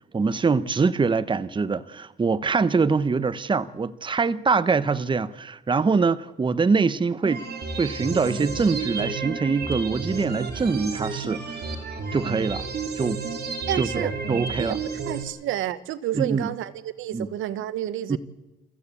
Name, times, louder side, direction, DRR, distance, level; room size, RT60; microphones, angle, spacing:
voice 1, 0.1-7.5 7.8-11.5 12.1-12.7 13.0-13.2 13.7-14.8 16.1-16.5 17.1-17.3 18.1-18.2, right 4 dB, 25° right, 0.9 m, -24 dB
sound 1, 7.2-15.2, right 4 dB, 55° right, 3.5 m, -31 dB
voice 2, 13.7-14.1 14.6-18.2, right 12 dB, 85° right, 1.1 m, -30 dB
27.5 x 15.0 x 8.4 m
cardioid pair, 90°, 20 cm